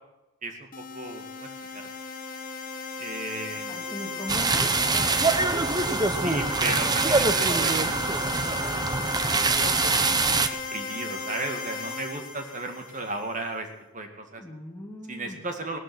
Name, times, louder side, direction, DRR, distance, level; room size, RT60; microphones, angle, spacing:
sound 1, 0.7-13.4, left 4 dB, 40° left, 1.5 m, -36 dB
voice 1, 0.9-1.8 3.0-3.7 6.2-9.2 9.6-9.9 10.7-13.7 13.9-14.4 15.1-15.8, right 2 dB, 35° right, 5 dB, 2.2 m, -35 dB
voice 2, 3.7-4.9 14.4-15.4, equal, 15° left, -3 dB, 2.1 m, -39 dB
sound 2, 4.3-10.5, right 3 dB, 20° right, 0.8 m, -24 dB
18.0 x 13.0 x 6.2 m, 0.98 s
head